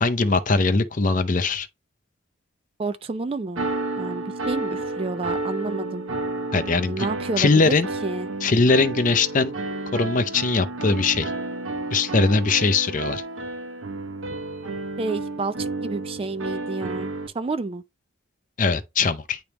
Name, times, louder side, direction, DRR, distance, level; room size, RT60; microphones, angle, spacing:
voice 1, 0.0-1.7 6.5-7.1 7.4-7.9 8.4-9.5 9.9-11.3 11.9-13.2 18.6-19.4, left 3 dB, 40° left, 0.5 m, -21 dB
voice 2, 2.8-3.7 4.0-6.0 6.9-8.3 15.0-17.8, right 3 dB, 25° right, 0.3 m, -30 dB
sound 1, 3.5-17.3, right 2 dB, 80° right, 1.0 m, -31 dB
9.5 x 3.4 x 2.9 m
head